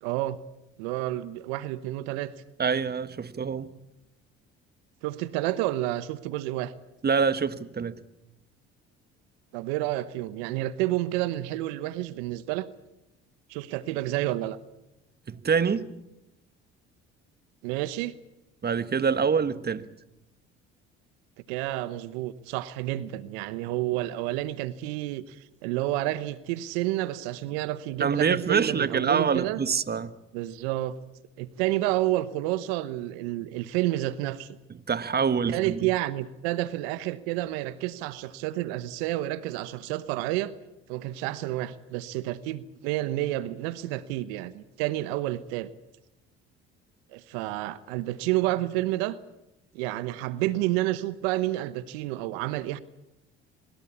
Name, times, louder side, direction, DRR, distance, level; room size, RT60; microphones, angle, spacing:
voice 1, 0.0-0.4 0.8-2.3 5.0-6.7 9.5-12.7 13.5-14.6 17.6-18.1 21.5-29.6 30.3-31.0 31.4-34.6 35.5-40.5 40.9-45.7 47.1-49.2 49.7-52.8, right 16 dB, 80° right, 1.0 m, -30 dB
voice 2, 2.6-3.7 7.0-8.0 15.3-15.9 18.6-19.9 28.0-30.2 34.9-35.9, right 6 dB, 30° right, 1.4 m, -25 dB
24.0 x 21.0 x 8.5 m
hypercardioid pair, 65°, 31 cm